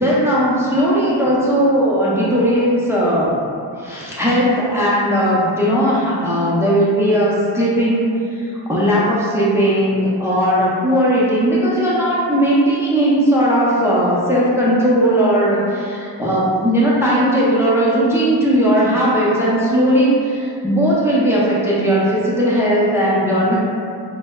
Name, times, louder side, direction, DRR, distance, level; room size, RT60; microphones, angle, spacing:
voice 1, 0.0-3.3 3.8-23.6, equal, 5° right, -7 dB, 0.5 m, -17 dB
4.3 x 2.0 x 2.2 m, 2.5 s
wide cardioid pair, 45°, 45 cm